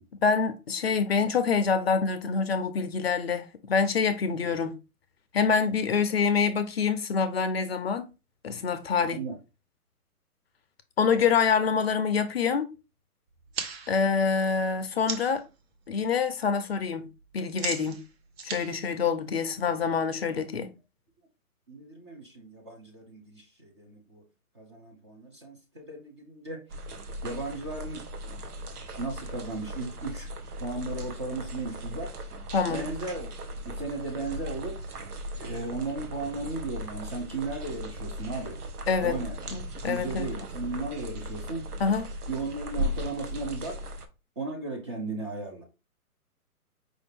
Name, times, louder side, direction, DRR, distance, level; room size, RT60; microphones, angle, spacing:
voice 1, 0.2-4.8 5.3-8.1 8.4-9.2 11.0-12.7 13.9-15.4 15.9-17.1 17.3-18.0 18.4-20.7 32.5-32.9 38.9-39.2 39.5-40.5 41.8-42.1, left 5 dB, 45° left, 0.5 m, -26 dB
voice 2, 9.0-9.4 21.7-24.2 24.5-26.6 27.2-28.0 29.0-30.3 30.6-32.1 32.7-33.3 33.7-34.8 35.4-38.6 39.0-39.6 39.9-41.7 42.3-43.8 44.4-45.6, right 3 dB, 20° right, 0.5 m, -35 dB
sound 1, 13.3-15.5 15.9-16.3 16.6-19.8, right 6 dB, 45° right, 0.8 m, -39 dB
sound 2, 26.7-44.1, equal, 80° right, 0.9 m, -37 dB
4.8 x 2.6 x 3.5 m
hypercardioid pair, 140°, 45 cm